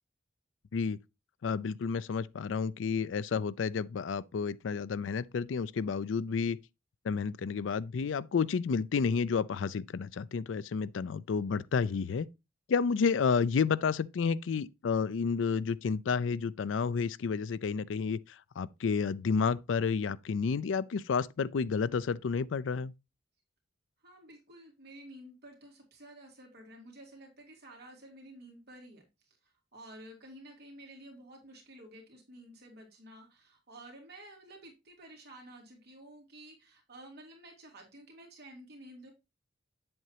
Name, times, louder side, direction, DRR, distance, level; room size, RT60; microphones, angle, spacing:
voice 1, 1.4-6.6 7.0-12.3 12.7-18.2 18.6-22.9, left 5 dB, 80° left, 0.4 m, -30 dB
voice 2, 24.0-39.1, right 1 dB, 60° right, 2.9 m, -52 dB
7.8 x 7.8 x 2.8 m
head